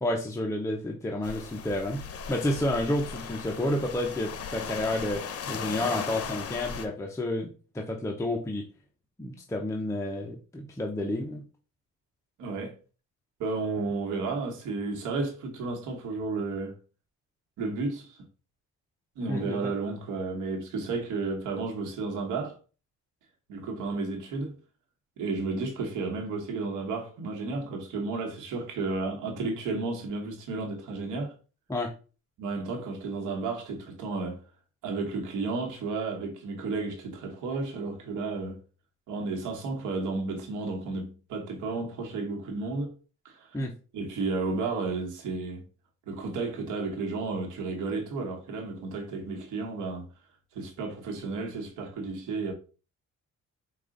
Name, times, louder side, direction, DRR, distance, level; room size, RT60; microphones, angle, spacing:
voice 1, 0.0-2.0 2.3-8.6 9.2-11.4 19.3-19.7 31.7-31.9 43.5-43.7, left 1 dB, 10° left, 0.6 m, -30 dB
sound 1, 1.2-6.9, left 6 dB, 50° left, 0.7 m, -37 dB
voice 2, 12.4-12.8 13.4-16.8 17.6-18.2 19.2-22.5 23.5-24.6 25.2-31.3 32.4-34.4 34.8-38.6 39.1-42.9 43.2-43.5 43.9-45.6 46.1-50.1 50.5-52.5, right 3 dB, 85° right, 1.2 m, -32 dB
4.8 x 2.4 x 3.7 m
cardioid pair, 90°, 30 cm